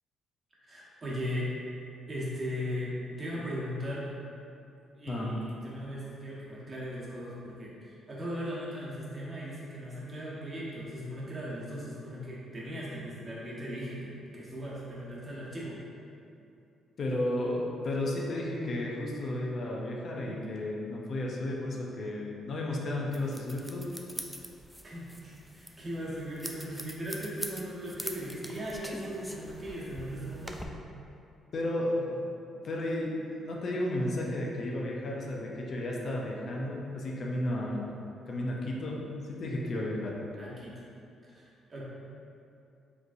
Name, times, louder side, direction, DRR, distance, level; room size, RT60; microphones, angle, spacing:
voice 1, 0.7-1.5 2.1-4.1 5.0-15.8 24.8-30.7 40.4-40.8 41.2-41.8, equal, 35° right, -7 dB, 1.1 m, -38 dB
voice 2, 5.1-5.4 17.0-23.9 31.5-32.2 32.6-33.2 33.4-38.0 38.3-40.2, left 1 dB, 55° left, -2 dB, 0.6 m, -33 dB
sound 1, 23.1-30.6, equal, ahead, 0.3 m, -43 dB
5.0 x 3.1 x 2.5 m, 2.6 s
cardioid pair, 90°, 0 cm